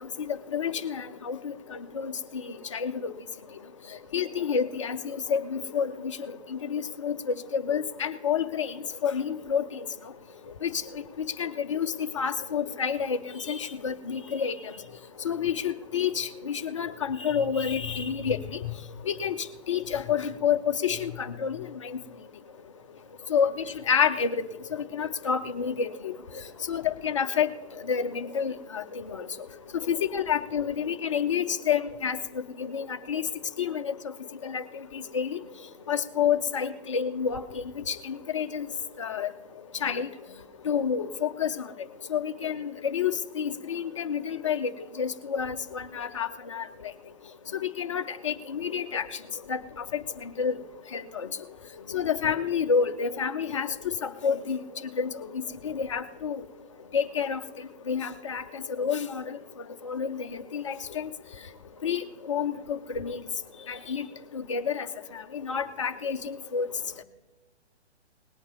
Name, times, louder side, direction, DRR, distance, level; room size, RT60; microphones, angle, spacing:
voice 1, 0.5-1.5 2.0-2.1 2.7-2.9 4.1-5.9 6.7-7.1 7.5-8.7 9.0-9.6 10.6-10.7 11.4-11.9 12.2-13.2 13.5-14.6 15.2-18.4 19.1-19.4 19.7-21.1 21.4-21.6 23.3-23.5 23.9-24.3 24.9-26.1 26.7-27.5 27.9-28.8 29.1-29.2 29.9-32.2 32.7-33.2 33.6-33.9 34.4-34.6 35.1-35.4 35.9-37.4 37.9-38.0 38.3-38.6 39.0-39.3 39.8-40.1 40.7-41.5 42.1-44.7 45.0-46.6 47.8-49.0 49.5-49.6 50.4-50.5 50.9-51.0 51.9-53.7 54.0-54.6 55.0-55.1 55.6-56.4 56.9-57.4 57.9-58.4 58.8-59.1 59.8-60.2 60.5-61.1 61.8-62.0 62.3-63.2 63.7-64.0 64.5-64.9 65.5-66.2 66.5-66.7, left 7 dB, 30° left, 9 dB, 0.4 m, -28 dB
18.5 x 8.4 x 5.4 m, 1.2 s
figure-of-eight pair, 130°, 34 cm